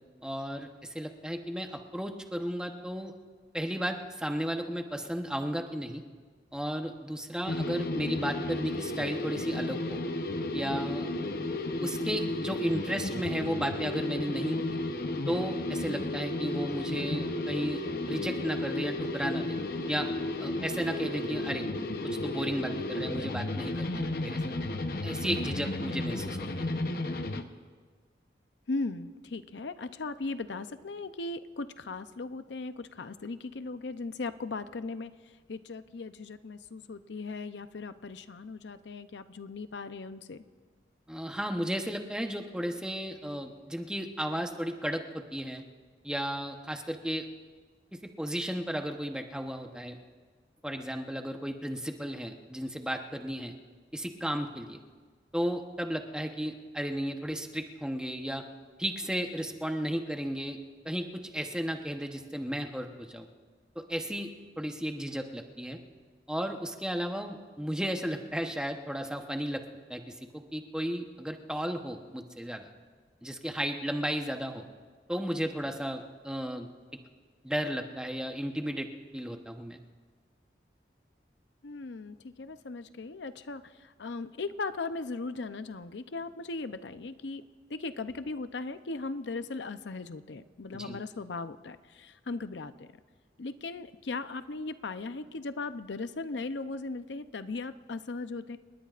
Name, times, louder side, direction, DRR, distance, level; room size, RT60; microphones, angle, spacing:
voice 1, 0.2-3.1 3.5-6.0 6.5-10.0 10.5-11.1 11.8-14.6 15.3-17.8 18.1-19.6 19.9-20.1 20.4-21.6 22.0-24.4 25.0-26.7 41.1-45.6 46.0-47.3 47.9-50.0 50.6-53.5 53.9-54.8 55.3-58.4 58.8-60.6 60.8-63.3 63.7-64.3 64.6-65.8 66.3-69.6 69.9-72.7 73.2-74.6 75.1-76.7 77.4-78.9 79.1-79.8 90.7-91.0, equal, 5° right, 4 dB, 0.9 m, -34 dB
sound 1, 7.5-27.4, left 2 dB, 55° left, 0.9 m, -33 dB
voice 2, 28.7-35.1 35.5-40.4 81.6-87.4 87.7-92.9 93.4-98.6, left 3 dB, 90° left, 11 dB, 0.6 m, -38 dB
28.5 x 19.5 x 2.5 m, 1.5 s
head